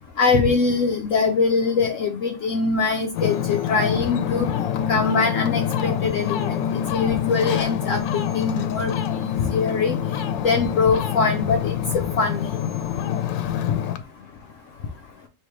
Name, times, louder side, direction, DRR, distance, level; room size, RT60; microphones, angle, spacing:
voice 1, 0.2-4.5 4.9-10.0 10.4-12.5, left 4 dB, 70° left, 0.8 m, -23 dB
Ocean, 3.1-14.0, left 9 dB, 85° left, 1.3 m, -26 dB
3.2 x 3.2 x 4.6 m
omnidirectional pair, 2.0 m